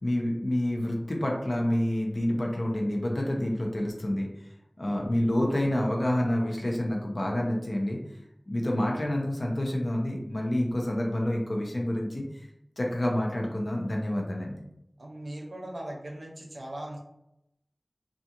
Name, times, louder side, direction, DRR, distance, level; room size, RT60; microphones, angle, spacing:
voice 1, 0.0-4.3 4.8-8.0 8.5-12.5 12.8-14.6, left 1 dB, 60° left, -1 dB, 0.6 m, -28 dB
voice 2, 15.0-17.0, right 1 dB, 90° right, -1 dB, 0.6 m, -39 dB
2.4 x 2.4 x 2.8 m, 0.82 s
wide cardioid pair, 50°, 0 cm